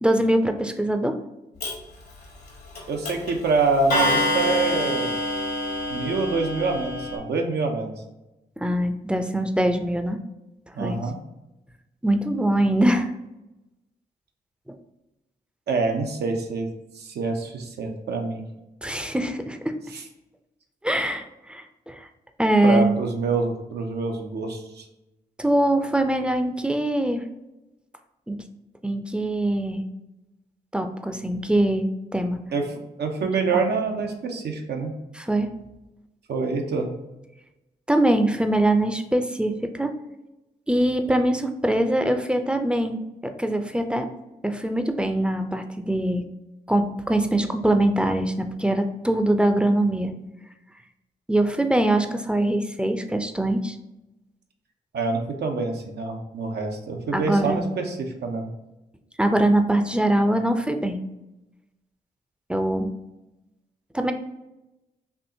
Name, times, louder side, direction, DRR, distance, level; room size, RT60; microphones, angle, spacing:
voice 1, 0.0-1.2 8.6-10.2 10.8-11.0 12.0-13.1 18.8-19.7 20.8-22.1 22.4-22.9 25.4-27.2 28.3-28.4 28.8-29.8 30.7-31.9 32.1-32.4 33.5-33.6 35.2-35.5 37.9-39.9 40.7-43.0 43.4-44.1 44.4-46.2 46.7-50.1 51.3-53.8 57.1-57.7 59.2-61.0 62.5-62.9 63.9-64.1, right 1 dB, 5° right, 7 dB, 0.5 m, -23 dB
Clock, 1.6-1.7 2.8-2.9 3.1-3.3 3.9-7.2, left 1 dB, 75° left, 1.2 m, -26 dB
voice 2, 2.9-5.1 5.9-7.9 10.7-11.1 15.7-16.7 16.9-18.4 19.9-20.0 22.6-24.8 32.5-32.6 33.0-34.9 36.3-36.9 54.9-58.5, right 4 dB, 75° right, 3 dB, 0.7 m, -26 dB
4.4 x 2.8 x 2.7 m, 0.97 s
supercardioid pair, 40°, 17 cm